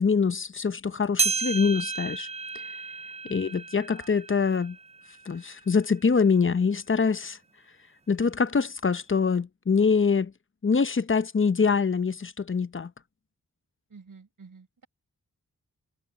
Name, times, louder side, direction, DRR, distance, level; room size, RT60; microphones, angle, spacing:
voice 1, 0.0-2.3 3.3-4.8 5.3-7.4 8.1-10.3 10.6-12.9, left 5 dB, 35° left, 0.8 m, -24 dB
sound 1, 1.2-5.8 6.3-6.4 7.2-7.3 8.3-8.4, right 5 dB, 20° right, 0.3 m, -33 dB
voice 2, 3.2-4.1 13.9-14.9, right 5 dB, 70° right, 4.5 m, -52 dB
cardioid pair, 60°, 34 cm